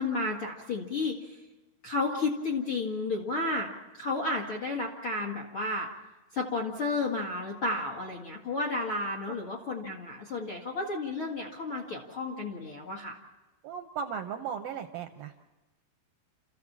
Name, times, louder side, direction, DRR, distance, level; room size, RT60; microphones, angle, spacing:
voice 1, 0.0-1.4 1.8-5.9 6.3-13.2, left 2 dB, 50° left, 0 dB, 1.6 m, -32 dB
voice 2, 13.6-15.3, right 7 dB, 75° right, 6 dB, 2.2 m, -36 dB
29.5 x 14.5 x 7.3 m, 1.1 s
omnidirectional pair, 4.9 m